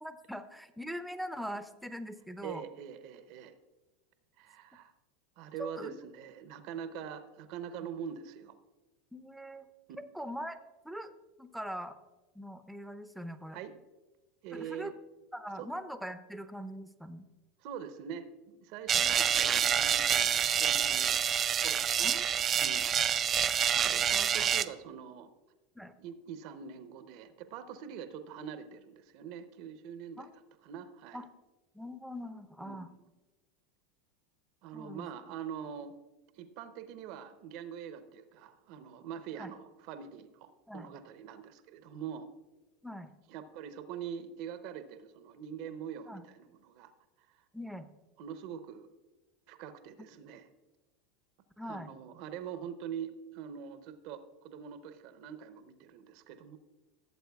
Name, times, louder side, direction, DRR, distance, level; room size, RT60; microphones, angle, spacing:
voice 1, 0.0-2.6 5.6-6.0 7.8-7.9 9.1-9.7 10.1-10.6 10.8-11.1 11.4-12.0 12.3-13.6 14.5-14.9 15.3-17.2 18.9-19.0 22.0-22.2 25.8-25.9 30.2-30.3 31.1-31.3 31.7-32.9 34.7-35.1 39.4-39.5 40.7-40.9 42.8-43.1 46.1-46.2 47.5-47.9 51.6-51.9, equal, ahead, 10 dB, 0.7 m, -42 dB
voice 2, 2.4-3.5 4.4-4.9 5.4-8.6 13.5-13.7 14.4-14.9 15.6-15.7 17.6-21.2 21.6-22.1 22.6-23.1 23.8-25.3 26.0-30.3 30.6-31.2 32.6-32.9 34.6-35.9 36.4-42.3 43.3-46.9 47.3-47.4 48.2-48.9 49.5-50.5 51.7-56.6, right 8 dB, 60° right, 11 dB, 0.7 m, -44 dB
sound 1, 18.9-24.6, right 8 dB, 35° right, 0.4 m, -27 dB
16.0 x 7.7 x 2.3 m, 1.2 s
hypercardioid pair, 90°, 0 cm